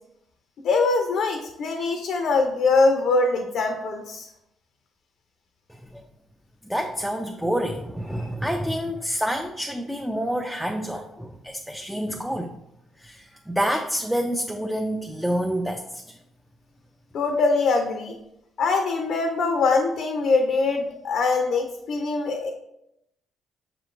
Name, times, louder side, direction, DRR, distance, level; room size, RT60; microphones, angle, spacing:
voice 1, 0.6-4.3 17.1-18.2 18.6-22.5, left 3 dB, 65° left, 3 dB, 0.5 m, -23 dB
voice 2, 5.7-6.0 6.6-12.5 13.0-16.2, equal, ahead, 3 dB, 0.4 m, -28 dB
6.1 x 3.0 x 2.5 m, 0.81 s
supercardioid pair, 60°, 0 cm